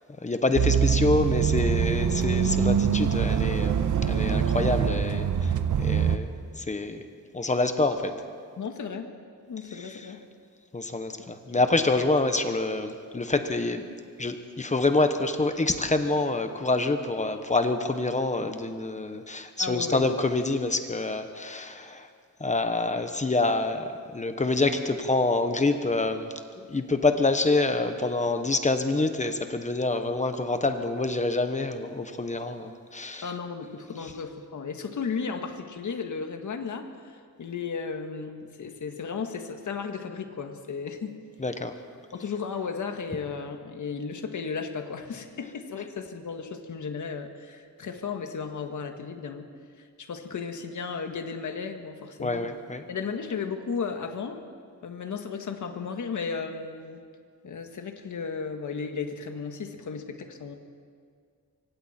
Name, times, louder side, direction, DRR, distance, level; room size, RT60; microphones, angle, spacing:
voice 1, 0.2-7.0 7.3-8.1 9.7-10.1 10.7-13.9 14.2-22.1 22.4-33.3 41.4-41.8 52.2-52.9, left 2 dB, 20° left, 7 dB, 1.0 m, -27 dB
sound 1, 0.6-6.2, right 7 dB, 65° right, 1.1 m, -24 dB
voice 2, 8.6-9.1 9.5-10.2 11.2-11.3 19.6-20.1 33.2-41.2 42.1-49.5 50.0-52.5 52.9-54.4 54.8-57.0 57.4-60.6, left 5 dB, 65° left, 5 dB, 1.7 m, -34 dB
25.0 x 24.0 x 4.4 m, 2.1 s
wide cardioid pair, 165°, 32 cm